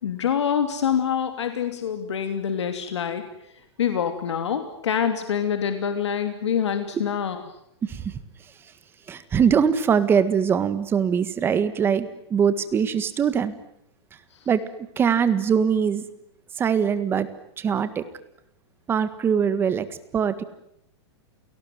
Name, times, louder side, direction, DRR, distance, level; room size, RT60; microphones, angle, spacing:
voice 1, 0.0-3.2 3.8-7.4 14.3-14.5, left 8 dB, 90° left, 7 dB, 2.9 m, -26 dB
voice 2, 7.8-8.2 9.1-13.5 14.4-14.6 15.0-16.0 16.6-17.3 17.6-18.0 18.9-19.8 20.1-20.4, right 7 dB, 15° right, 12 dB, 1.6 m, -22 dB
28.5 x 19.0 x 9.4 m, 0.77 s
hypercardioid pair, 155°, 14 cm